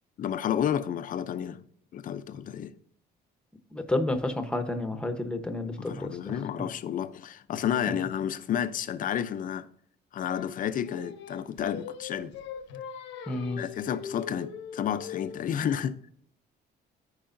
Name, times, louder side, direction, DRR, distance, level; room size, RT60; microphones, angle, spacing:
voice 1, 0.2-1.6 1.9-2.7 5.8-9.7 10.1-12.4 13.6-16.0, left 9 dB, 50° left, 0.6 m, -31 dB
voice 2, 3.7-6.2 13.3-13.6, left 2 dB, 5° left, 1.0 m, -30 dB
Singing, 10.3-15.5, left 7 dB, 85° left, 1.1 m, -41 dB
14.5 x 4.9 x 2.6 m
cardioid pair, 125°, 18 cm